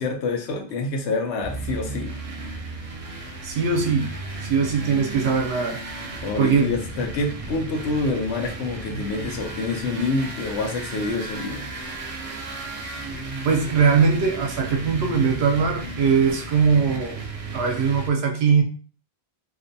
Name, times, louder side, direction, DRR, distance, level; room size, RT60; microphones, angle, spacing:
voice 1, 0.0-2.1 6.2-11.7, left 3 dB, 80° left, 3 dB, 0.8 m, -27 dB
sound 1, 1.4-18.1, right 2 dB, 55° right, 0.4 m, -34 dB
voice 2, 3.4-4.1 4.4-5.8 6.4-6.7 13.4-17.2 17.5-18.6, right 5 dB, 70° right, 2 dB, 0.8 m, -21 dB
2.6 x 2.1 x 2.5 m, 0.40 s
omnidirectional pair, 1.1 m